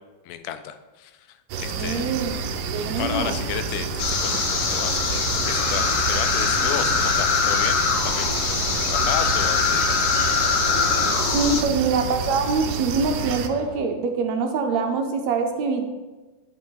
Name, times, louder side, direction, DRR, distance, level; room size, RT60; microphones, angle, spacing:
voice 1, 0.3-2.1 3.0-10.1, left 10 dB, 85° left, 9 dB, 2.1 m, -33 dB
sound 1, 1.5-13.5, right 5 dB, 90° right, 2.2 m, -29 dB
voice 2, 1.8-2.4 2.7-3.3 11.3-15.8, right 4 dB, 75° right, 4 dB, 1.8 m, -24 dB
sound 2, 2.7-13.8, right 2 dB, 50° right, 1.5 m, -41 dB
sound 3, 4.0-11.6, left 6 dB, 65° left, 1.5 m, -23 dB
11.0 x 5.1 x 3.9 m, 1.2 s
omnidirectional pair, 3.5 m